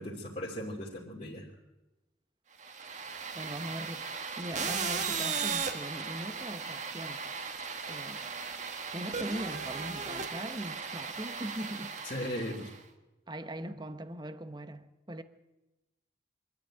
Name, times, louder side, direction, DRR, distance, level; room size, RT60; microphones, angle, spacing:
voice 1, 0.0-1.6 12.0-12.7 13.6-13.7, equal, 40° left, 2.9 m, -38 dB
sound 1, 2.6-12.8, right 5 dB, 40° right, 1.6 m, -37 dB
voice 2, 3.3-4.1 4.4-7.2 7.9-8.3 8.9-11.9 12.2-12.4 13.3-15.2, right 1 dB, 25° right, 1.0 m, -40 dB
24.5 x 12.5 x 9.1 m
head